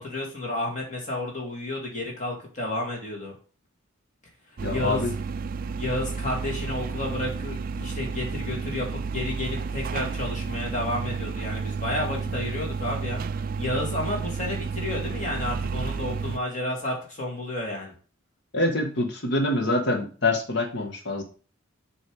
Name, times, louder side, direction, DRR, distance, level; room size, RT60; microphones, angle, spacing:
voice 1, 0.0-3.3 4.7-5.0 5.8-13.2 13.6-17.9, left 1 dB, 35° left, -2 dB, 2.5 m, -31 dB
voice 2, 4.6-5.1 18.5-21.2, left 2 dB, 55° left, 3 dB, 1.4 m, -25 dB
sound 1, 4.6-16.4, right 5 dB, 40° right, 0.3 m, -31 dB
7.2 x 3.4 x 4.8 m, 0.39 s
head